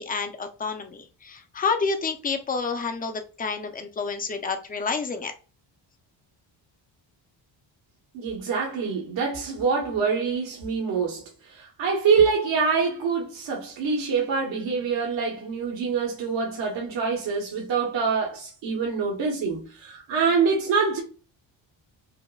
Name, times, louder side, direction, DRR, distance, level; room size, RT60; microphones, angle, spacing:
voice 1, 0.0-5.3, left 4 dB, 20° left, 0.4 m, -29 dB
voice 2, 8.1-21.0, right 5 dB, 70° right, 1.2 m, -25 dB
5.2 x 2.1 x 2.3 m
cardioid pair, 140°, 46 cm